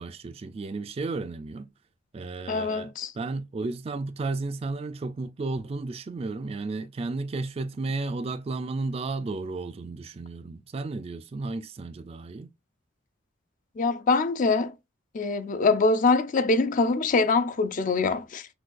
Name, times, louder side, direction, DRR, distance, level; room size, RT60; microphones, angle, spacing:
voice 1, 0.0-1.7 2.1-12.5, right 3 dB, 30° right, 0.3 m, -33 dB
voice 2, 2.5-3.1 13.8-14.7 15.1-18.5, left 3 dB, 40° left, 0.4 m, -24 dB
6.1 x 2.3 x 2.5 m
head